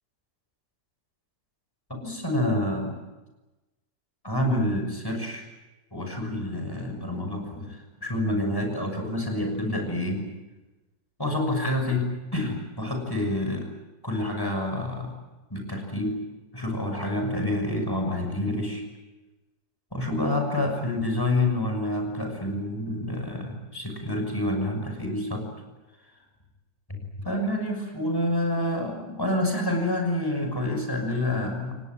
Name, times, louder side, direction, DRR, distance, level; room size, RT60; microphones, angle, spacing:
voice 1, 2.0-3.0 4.2-5.5 5.9-10.3 11.2-13.7 14.0-15.1 15.5-16.2 16.5-18.9 19.9-25.5 26.9-31.8, left 1 dB, 10° left, 3 dB, 6.2 m, -28 dB
29.5 x 17.5 x 9.5 m, 1.1 s
omnidirectional pair, 2.1 m